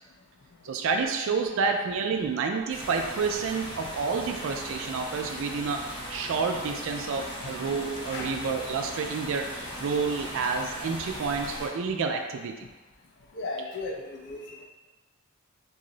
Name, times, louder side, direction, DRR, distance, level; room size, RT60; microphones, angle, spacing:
voice 1, 0.6-5.8 6.1-9.5 9.8-12.5, right 5 dB, 60° right, 4 dB, 0.3 m, -29 dB
sound 1, 2.7-11.7, equal, 20° left, 0.7 m, -38 dB
voice 2, 13.3-14.6, left 3 dB, 55° left, 0 dB, 0.5 m, -35 dB
2.6 x 2.0 x 3.8 m, 1.2 s
head